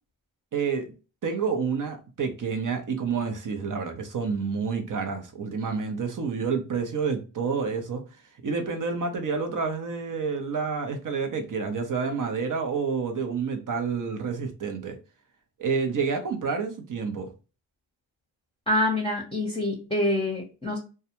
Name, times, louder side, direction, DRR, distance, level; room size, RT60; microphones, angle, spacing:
voice 1, 0.5-0.9 1.2-8.0 8.4-15.0 15.6-17.3, right 5 dB, 40° right, 0.7 m, -29 dB
voice 2, 18.7-20.8, left 1 dB, 10° left, 0.8 m, -26 dB
2.3 x 2.2 x 2.9 m
supercardioid pair, 50°, 48 cm